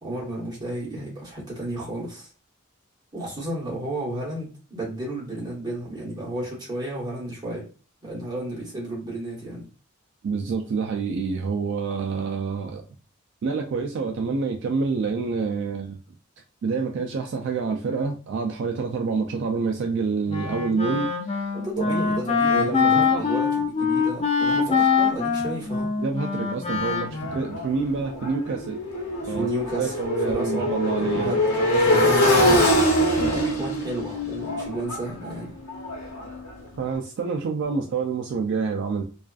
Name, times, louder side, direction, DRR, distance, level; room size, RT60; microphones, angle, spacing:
voice 1, 0.0-2.3 3.1-7.6 8.0-9.6 21.5-25.9 29.2-29.9 30.2-35.5 37.7-37.8, right 1 dB, 20° right, -5 dB, 1.2 m, -33 dB
voice 2, 10.2-12.8 13.4-16.0 16.6-21.5 22.5-23.3 26.0-28.8 29.3-29.5 29.8-31.4 36.8-39.0, right 4 dB, 55° right, 2 dB, 0.3 m, -27 dB
Wind instrument woodwind instrument, 20.3-27.6, left 5 dB, 30° left, 0.4 m, -24 dB
Motorcycle, 26.8-36.7, left 1 dB, 90° left, 0.9 m, -24 dB
2.4 x 2.3 x 2.3 m, 0.36 s
head